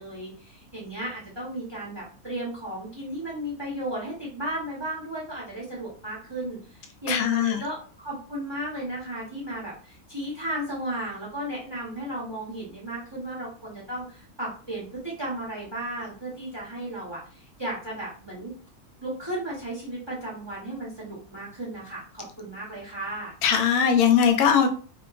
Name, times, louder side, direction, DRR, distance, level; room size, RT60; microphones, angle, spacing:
voice 1, 0.0-18.5 19.0-23.3, right 1 dB, 25° right, -5 dB, 0.6 m, -34 dB
voice 2, 7.1-7.6 23.4-24.7, left 7 dB, 90° left, 5 dB, 1.1 m, -20 dB
2.9 x 2.2 x 2.3 m, 0.40 s
omnidirectional pair, 1.5 m